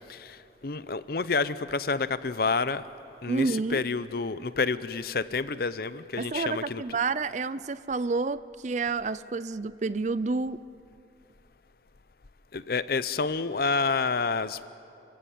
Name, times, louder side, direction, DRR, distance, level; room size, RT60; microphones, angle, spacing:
voice 1, 0.1-2.8 3.2-6.8 12.5-14.7, left 4 dB, 55° left, 0.7 m, -29 dB
voice 2, 3.3-3.8 6.2-10.6, right 3 dB, 40° right, 0.4 m, -29 dB
29.5 x 15.5 x 9.3 m
head